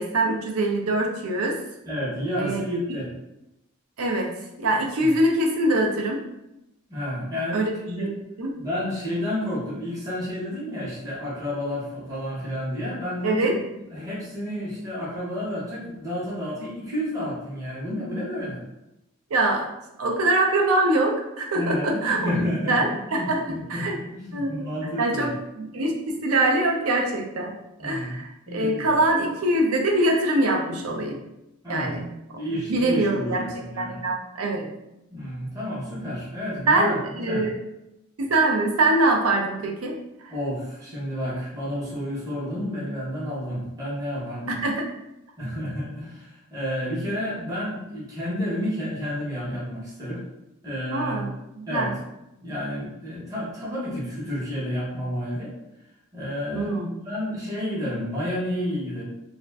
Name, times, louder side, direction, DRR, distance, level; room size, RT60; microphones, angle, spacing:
voice 1, 0.0-1.6 2.4-2.6 4.0-4.3 4.6-6.2 7.5-7.7 8.0-8.1 8.4-8.6 13.2-13.6 14.0-14.1 19.3-19.7 20.0-22.2 22.7-24.0 24.3-24.7 25.0-27.6 27.8-31.2 31.7-32.1 32.7-33.4 33.8-34.7 36.7-37.5 38.2-40.3 44.5-44.8 50.9-51.9 56.5-56.9, right 2 dB, 75° right, 2 dB, 0.5 m, -23 dB
voice 2, 1.9-3.1 5.0-5.1 6.9-7.6 7.8-8.1 8.6-13.4 13.9-18.6 21.5-25.3 27.8-29.0 31.6-31.9 32.4-34.0 35.1-37.5 40.3-44.6 45.4-50.2 50.6-51.2 51.7-51.9 52.4-55.5 56.1-59.0, left 1 dB, 15° right, -8 dB, 0.7 m, -30 dB
2.4 x 2.1 x 3.3 m, 0.89 s
head